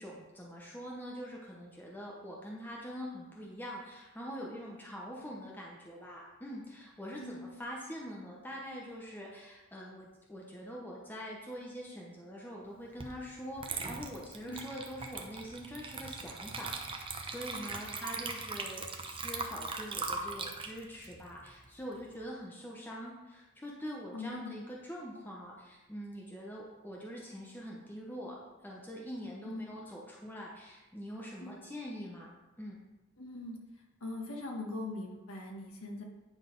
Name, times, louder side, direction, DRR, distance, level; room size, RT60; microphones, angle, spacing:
voice 1, 0.0-32.3 32.6-32.8, equal, 10° left, -3 dB, 0.9 m, -44 dB
voice 2, 7.2-7.5 14.5-14.7 24.1-24.6 29.4-29.7 31.4-31.6 33.2-33.6 34.0-36.0, left 2 dB, 70° left, 0 dB, 1.6 m, -41 dB
Water / Liquid, 13.0-13.2 13.6-22.1, right 4 dB, 25° right, 0.7 m, -40 dB
9.6 x 4.1 x 5.2 m, 1.1 s
head